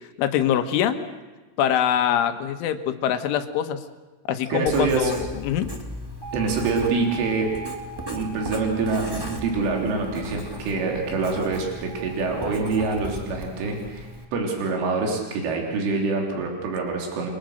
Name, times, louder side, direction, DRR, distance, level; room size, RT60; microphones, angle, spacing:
voice 1, 0.2-1.0 1.6-3.8 4.3-5.7, left 9 dB, 80° left, 8 dB, 3.8 m, -23 dB
voice 2, 4.5-5.1 6.3-7.5 8.1-17.3, right 4 dB, 85° right, 0 dB, 6.0 m, -25 dB
Writing, 4.7-14.2, equal, 15° right, 0.8 m, -37 dB
Alarm, 6.2-14.3, right 4 dB, 25° left, 7.7 m, -41 dB
30.0 x 23.5 x 6.6 m, 1.2 s
omnidirectional pair, 5.5 m